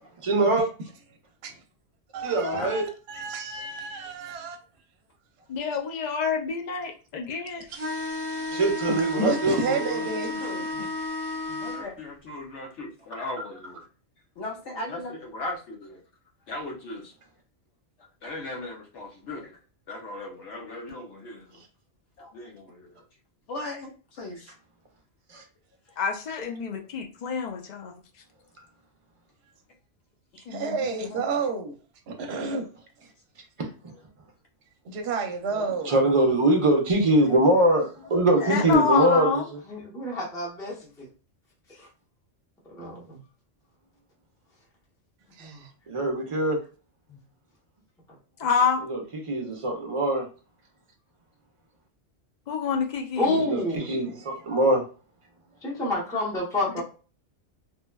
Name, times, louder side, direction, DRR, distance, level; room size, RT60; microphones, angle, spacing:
voice 1, 0.2-0.6 2.2-2.9 8.5-9.9 25.3-25.4 33.6-33.7 35.9-39.4 45.9-46.6 48.9-49.0 49.3-50.3 53.4-53.6 53.9-54.8, right 1 dB, 40° right, 0.4 m, -22 dB
voice 2, 2.1-4.6 8.9-10.9 30.5-31.7 32.1-32.7 34.8-36.0 45.3-45.7 54.2-54.6, right 4 dB, 65° right, 0.8 m, -31 dB
voice 3, 5.5-7.7 26.0-27.9 30.5-30.8 31.1-31.2 38.4-39.5 47.1-47.2 48.4-48.8 52.5-53.4, left 6 dB, 55° left, 0.5 m, -27 dB
sound 1, 7.7-11.8, left 2 dB, 25° right, 0.9 m, -32 dB
voice 4, 10.3-10.9 11.5-13.9 14.4-16.0 16.5-17.1 18.2-19.6 19.9-21.6 22.2-23.0 23.5-24.5 30.3-30.4, left 2 dB, 75° left, 1.0 m, -38 dB
voice 5, 36.0-36.4 39.7-40.7 41.7-41.9 42.7-43.2 45.4-45.7 53.2-53.9 55.6-56.8, left 2 dB, 5° left, 0.7 m, -29 dB
3.1 x 2.1 x 2.2 m
omnidirectional pair, 1.2 m